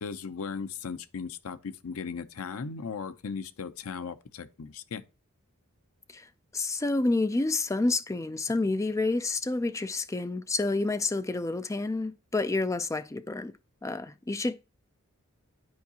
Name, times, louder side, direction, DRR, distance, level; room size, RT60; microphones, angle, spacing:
voice 1, 0.0-5.0, left 5 dB, 80° left, 0.6 m, -37 dB
voice 2, 6.5-13.5 13.8-14.6, left 2 dB, 15° left, 0.3 m, -29 dB
9.5 x 4.7 x 2.8 m
head